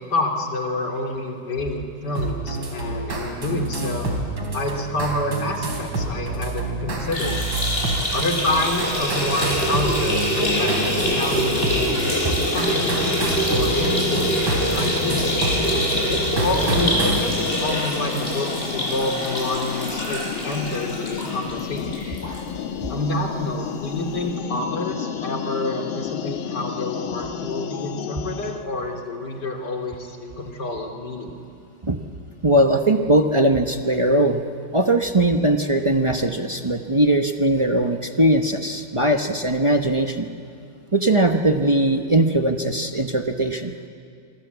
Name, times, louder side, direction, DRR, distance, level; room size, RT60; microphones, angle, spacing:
voice 1, 0.1-4.1 4.5-7.4 8.1-15.3 16.1-22.0 22.9-31.4, left 1 dB, 55° left, 3 dB, 3.2 m, -28 dB
sound 1, 2.2-17.3, right 2 dB, 70° right, 4.5 m, -28 dB
sound 2, 7.0-22.4 22.8-22.9 23.2-23.3 24.3-24.4, equal, 25° left, 7.1 m, -25 dB
sound 3, 10.4-28.6, left 8 dB, 75° left, 1.9 m, -32 dB
voice 2, 32.4-34.4 34.7-40.3 40.9-43.7, right 1 dB, 35° right, 4 dB, 0.4 m, -20 dB
27.0 x 24.0 x 8.1 m, 2.4 s
omnidirectional pair, 2.3 m